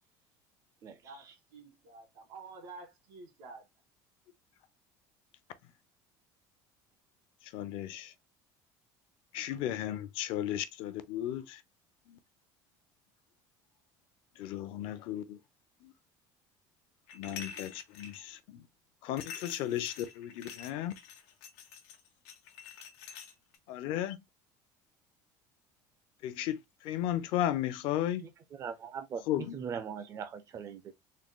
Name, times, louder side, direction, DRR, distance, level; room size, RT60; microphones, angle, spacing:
voice 1, 1.0-3.7, right 3 dB, 75° right, 1.8 m, -50 dB
voice 2, 7.4-8.1 9.3-11.6 12.1-12.2 14.4-15.4 15.8-15.9 17.1-18.7 19.0-20.9 23.7-24.2 26.2-28.2 29.3-29.6, left 12 dB, 65° left, 0.6 m, -35 dB
sound 1, 17.1-18.2 19.2-23.6, left 7 dB, 85° left, 1.0 m, -47 dB
voice 3, 28.5-30.9, right 7 dB, 35° right, 0.5 m, -40 dB
3.8 x 2.0 x 3.6 m
cardioid pair, 125°, 9 cm